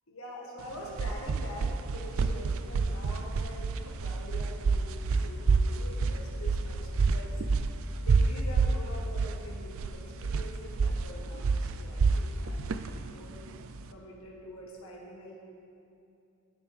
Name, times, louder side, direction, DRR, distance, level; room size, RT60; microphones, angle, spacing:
voice 1, 0.1-7.4 8.0-13.5 13.9-15.4, equal, 65° left, -2 dB, 1.4 m, -45 dB
sound 1, 0.6-13.9, right 4 dB, 65° right, 0.4 m, -28 dB
11.5 x 9.5 x 3.4 m, 2.6 s
head